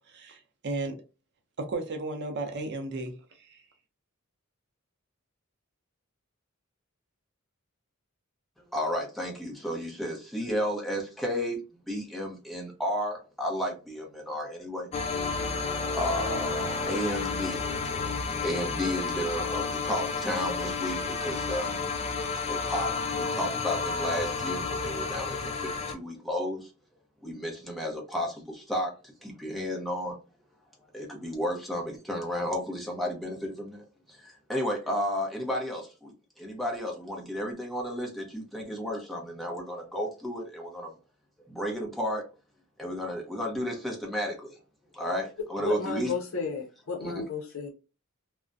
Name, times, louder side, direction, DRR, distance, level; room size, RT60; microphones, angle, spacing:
voice 1, 0.1-1.0 1.6-3.6, right 2 dB, 55° right, 0.5 m, -34 dB
voice 2, 8.7-11.6 11.9-14.9 15.9-17.6 18.3-21.7 22.1-26.7 27.2-30.2 30.9-40.9 41.5-42.3 42.8-44.6 44.9-46.1 47.0-47.2, equal, ahead, 0.7 m, -33 dB
sound 1, 14.9-25.9, left 4 dB, 30° left, 0.3 m, -31 dB
voice 3, 45.6-47.7, left 4 dB, 70° left, 0.6 m, -33 dB
2.4 x 2.1 x 2.5 m
head